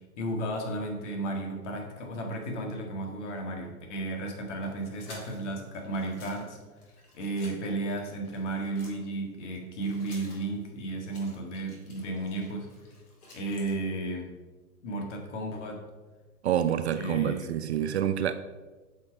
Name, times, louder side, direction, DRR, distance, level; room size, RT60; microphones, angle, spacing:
voice 1, 0.2-6.6 7.1-12.7 13.3-14.3 14.8-15.8 17.0-17.5, right 2 dB, 50° left, 1.8 m, -33 dB
sound 1, 4.6-9.1 9.4-13.7, left 1 dB, 75° left, 2.5 m, -53 dB
voice 2, 16.4-18.3, right 10 dB, 50° right, 0.5 m, -27 dB
8.1 x 5.1 x 4.6 m
hypercardioid pair, 120°, 46 cm